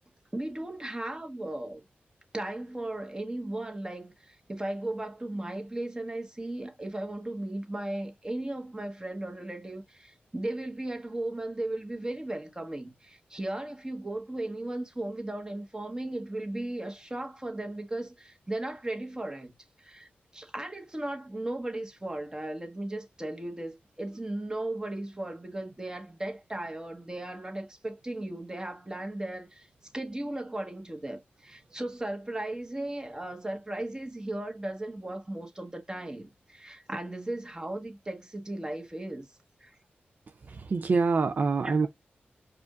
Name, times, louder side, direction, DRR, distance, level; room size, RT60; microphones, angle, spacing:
voice 1, 0.3-1.8 2.3-19.5 19.8-29.7 29.9-39.8 41.6-41.7, right 1 dB, 20° right, 1.3 m, -36 dB
voice 2, 40.4-41.9, right 4 dB, 50° right, 0.4 m, -26 dB
4.8 x 2.5 x 2.3 m
wide cardioid pair, 95°, 4 cm